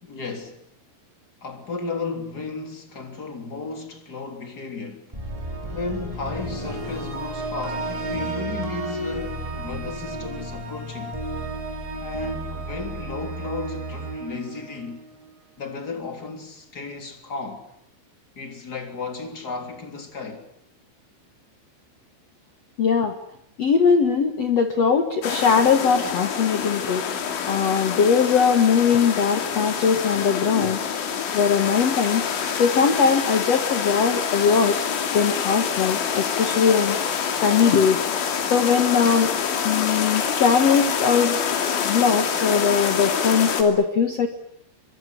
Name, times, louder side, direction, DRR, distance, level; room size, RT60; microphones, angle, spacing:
voice 1, 0.0-0.6 1.4-5.1 5.7-11.2 12.0-15.0 15.6-17.7 18.3-20.4, left 4 dB, 25° left, 2.9 m, -34 dB
sound 1, 5.1-15.3, right 2 dB, 5° right, 6.3 m, -32 dB
voice 2, 22.8-23.1 23.6-27.1 27.5-32.3 32.6-34.8 35.1-37.0 37.4-38.0 38.5-39.3 39.6-41.4 41.8-44.3, left 6 dB, 90° left, 1.4 m, -20 dB
sound 2, 25.2-43.6, left 7 dB, 70° left, 5.1 m, -26 dB
23.5 x 23.5 x 9.4 m
omnidirectional pair, 5.7 m